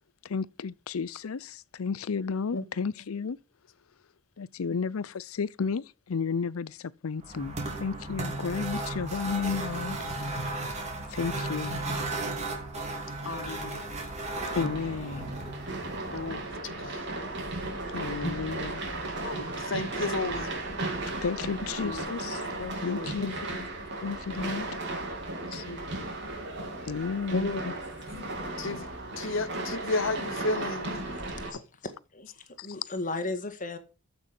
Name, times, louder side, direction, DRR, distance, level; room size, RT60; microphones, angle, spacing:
voice 1, 0.2-3.4 4.4-10.0 11.1-11.8 14.5-15.3 17.9-18.8 21.2-22.4 22.8-23.4 24.0-24.7 25.5-25.6 26.9-27.5 32.6-32.7, left 5 dB, 85° left, 0.5 m, -32 dB
sound 1, 7.2-16.6, right 2 dB, 35° right, 2.7 m, -35 dB
voice 2, 13.2-13.9 16.1-17.1 18.2-18.4 19.1-20.5 21.8-22.1 22.6-23.3 23.6-23.7 25.6-26.1 27.3-27.7 28.6-28.9 29.2-31.0 31.5-31.7, left 3 dB, 65° left, 1.0 m, -33 dB
sound 2, 14.3-31.5, right 2 dB, 60° right, 3.8 m, -35 dB
voice 3, 32.1-33.8, left 2 dB, 40° left, 1.8 m, -35 dB
14.5 x 6.3 x 5.3 m
head